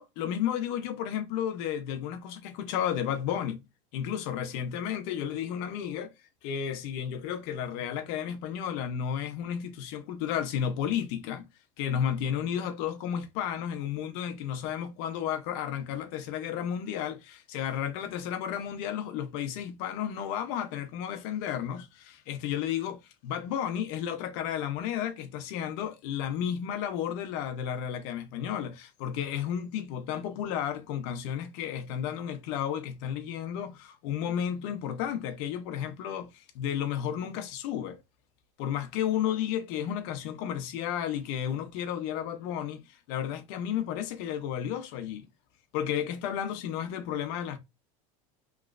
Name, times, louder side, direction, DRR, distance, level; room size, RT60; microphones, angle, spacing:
voice 1, 0.0-3.6 3.9-6.1 6.4-11.4 11.8-38.0 38.6-42.8 43.1-45.3 45.7-47.6, left 9 dB, 60° left, 0.7 m, -32 dB
3.0 x 3.0 x 2.4 m
supercardioid pair, 150°, 17 cm